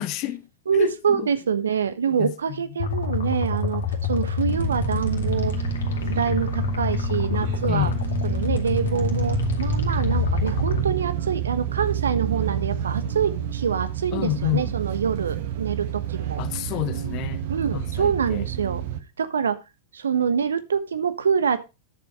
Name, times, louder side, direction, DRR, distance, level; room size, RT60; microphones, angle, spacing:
voice 1, 0.0-0.5 0.7-1.3 2.2-2.3 7.7-8.0 14.1-14.7 16.4-17.4 17.7-18.4, left 15 dB, 45° left, 1.0 m, -28 dB
voice 2, 0.7-3.8 4.1-5.6 6.0-7.9 8.2-16.4 17.5-18.8 19.2-19.6 19.9-21.6, right 7 dB, 75° right, 1.1 m, -25 dB
sound 1, 2.8-10.8, left 6 dB, 70° left, 2.2 m, -27 dB
sound 2, 4.4-19.0, right 10 dB, 60° right, 1.6 m, -29 dB
10.0 x 7.1 x 4.8 m
figure-of-eight pair, 95°, 0 cm